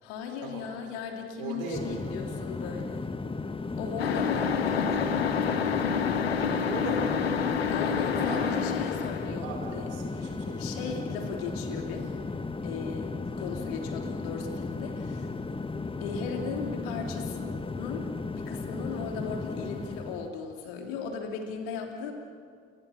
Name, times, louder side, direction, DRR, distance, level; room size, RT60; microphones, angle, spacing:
voice 1, 0.0-3.0 3.8-4.9 7.7-9.9 10.1-12.0 12.6-15.3 16.0-18.0 18.3-22.1, left 5 dB, 70° left, 3 dB, 3.2 m, -37 dB
voice 2, 1.4-2.3 4.9-5.2 6.6-7.5 8.3-8.7 9.3-10.7, right 4 dB, 70° right, 3 dB, 5.4 m, -39 dB
sound 1, 1.7-20.3, left 3 dB, 20° left, 1.3 m, -35 dB
sound 2, 4.0-9.4, left 7 dB, 90° left, 1.1 m, -28 dB
29.5 x 24.0 x 7.3 m, 2.3 s
figure-of-eight pair, 55°, 30 cm